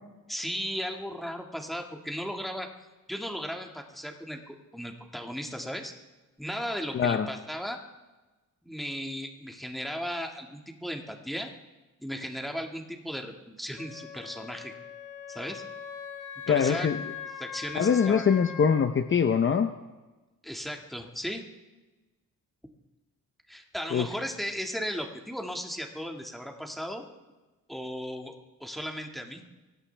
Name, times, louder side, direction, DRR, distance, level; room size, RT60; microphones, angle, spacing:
voice 1, 0.3-2.7 3.1-5.9 6.4-7.8 8.6-11.5 12.0-14.7 15.3-15.6 16.5-16.9 17.4-18.2 20.4-21.4 23.5-27.0 27.7-28.3 28.6-29.4, equal, ahead, 2 dB, 1.8 m, -36 dB
voice 2, 6.9-7.3 16.5-17.0 17.7-19.7 23.9-24.1, left 7 dB, 35° left, 8 dB, 0.7 m, -23 dB
Wind instrument woodwind instrument, 13.8-18.9, left 7 dB, 65° left, 1.5 m, -41 dB
24.5 x 17.5 x 3.4 m, 1.2 s
cardioid pair, 120°, 33 cm